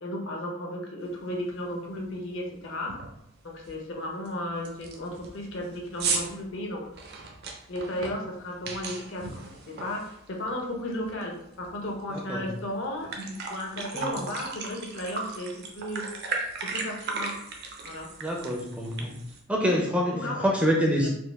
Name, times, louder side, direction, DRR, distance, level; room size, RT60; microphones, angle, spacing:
voice 1, 0.0-3.0 3.4-6.9 7.7-16.1 16.6-17.4 17.8-18.1 20.2-20.5 21.0-21.1, left 1 dB, 55° left, 1 dB, 0.8 m, -34 dB
Fizzy drink pour with ice, 1.3-1.4 1.8-2.1 2.4-2.5 2.9-3.2 3.6-3.7 4.2-4.3 4.6-10.6 10.9-12.2 12.6-12.7 12.9-19.4, right 4 dB, 45° right, 0.6 m, -36 dB
voice 2, 12.1-12.5 13.9-14.1 18.2-19.1 19.5-21.1, equal, 5° right, -1 dB, 0.5 m, -26 dB
4.4 x 2.4 x 3.4 m, 0.79 s
head